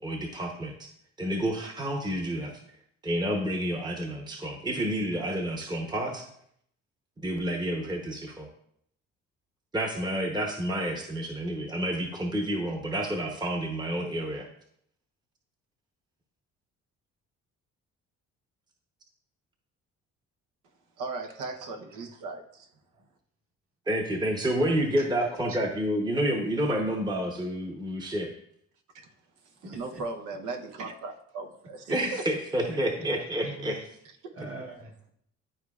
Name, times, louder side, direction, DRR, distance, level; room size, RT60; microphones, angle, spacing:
voice 1, 0.0-0.9 1.2-2.6 3.0-6.2 7.2-8.5 9.7-14.5 23.9-28.3 31.9-33.8, right 1 dB, 15° right, 0.9 m, -29 dB
voice 2, 21.0-22.7 28.9-29.1 29.4-32.2 34.2-34.3, right 3 dB, 80° right, 0.9 m, -38 dB
voice 3, 29.5-30.0 31.9-32.2 32.7-33.9 34.3-35.1, right 2 dB, 45° right, 1.7 m, -42 dB
11.0 x 4.6 x 2.4 m
cardioid pair, 90°, 30 cm